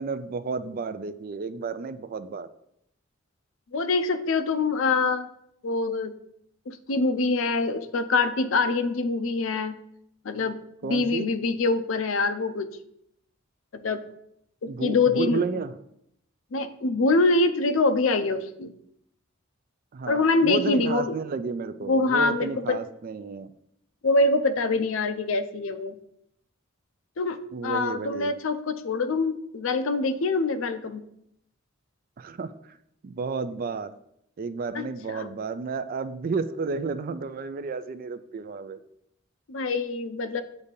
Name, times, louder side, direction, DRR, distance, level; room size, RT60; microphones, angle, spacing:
voice 1, 0.0-2.5 10.8-11.3 14.7-15.7 19.9-23.5 27.5-28.3 32.2-32.8 33.0-33.9 34.4-38.8, right 4 dB, 45° right, 12 dB, 0.4 m, -32 dB
voice 2, 3.7-5.3 5.6-6.1 6.7-9.7 10.2-10.6 10.8-12.7 13.7-14.0 14.6-15.4 16.5-18.7 20.1-21.2 21.9-22.8 24.0-26.0 27.2-31.0 34.7-35.3 39.5-40.4, left 3 dB, 70° left, 10 dB, 0.5 m, -25 dB
8.1 x 2.7 x 5.2 m, 0.75 s
head